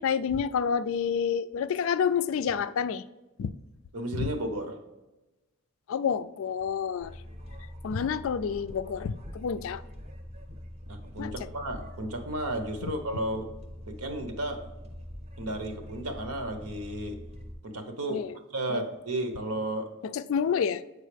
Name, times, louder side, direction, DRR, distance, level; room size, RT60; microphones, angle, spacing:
voice 1, 0.0-3.0 3.4-3.5 4.1-4.3 5.9-7.1 7.8-9.8 11.2-11.3 12.8-12.9 18.1-18.3 18.7-18.8 20.0-20.8, left 7 dB, 65° left, 0.3 m, -29 dB
voice 2, 3.9-4.8 10.9-13.5 13.9-14.7 15.4-17.2 17.6-19.9, right 1 dB, 90° right, 0.9 m, -33 dB
sound 1, 7.0-17.6, equal, 30° right, 0.6 m, -44 dB
7.5 x 4.7 x 3.3 m
head